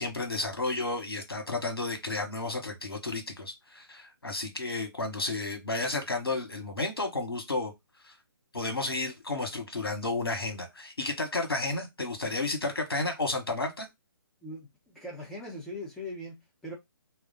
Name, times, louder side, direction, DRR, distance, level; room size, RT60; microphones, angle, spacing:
voice 1, 0.0-7.7 8.0-8.1 8.5-13.9, left 2 dB, 80° left, 1.1 m, -32 dB
voice 2, 14.4-16.8, left 1 dB, 5° left, 0.8 m, -40 dB
2.3 x 2.1 x 3.9 m
figure-of-eight pair, 135°, 12 cm